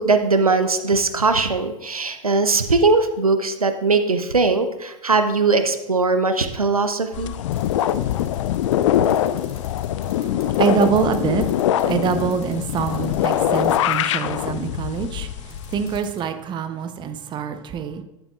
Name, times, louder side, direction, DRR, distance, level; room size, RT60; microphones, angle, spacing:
voice 1, 0.0-7.3, right 3 dB, 90° right, 9 dB, 0.6 m, -20 dB
sound 1, 7.1-16.0, left 11 dB, 60° left, 0.4 m, -23 dB
sound 2, 7.5-11.1 11.4-13.9 15.5-16.2, left 4 dB, 85° left, 2.4 m, -46 dB
voice 2, 10.6-11.4 11.8-15.3 15.7-18.0, right 7 dB, 25° right, 9 dB, 0.7 m, -24 dB
10.5 x 9.0 x 2.3 m, 0.93 s
figure-of-eight pair, 90°, 18 cm